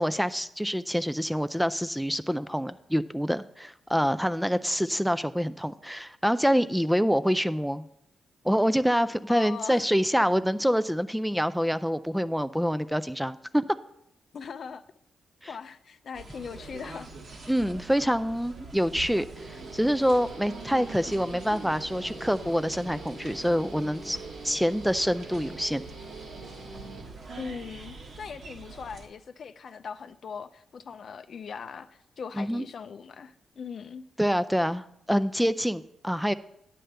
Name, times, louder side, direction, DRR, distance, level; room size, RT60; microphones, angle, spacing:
voice 1, 0.0-7.8 8.4-13.6 15.4-15.5 17.5-24.2 24.4-25.8 32.3-32.6 34.2-36.3, equal, ahead, 0.3 m, -26 dB
voice 2, 9.3-9.9 14.3-14.8 15.5-17.1 27.4-34.0, left 6 dB, 60° left, 0.4 m, -40 dB
sound 1, 16.1-29.1, right 4 dB, 60° right, 1.4 m, -45 dB
Guitar, 19.3-27.0, right 3 dB, 80° right, 2.1 m, -44 dB
10.0 x 7.6 x 3.4 m
cardioid pair, 75°, 0 cm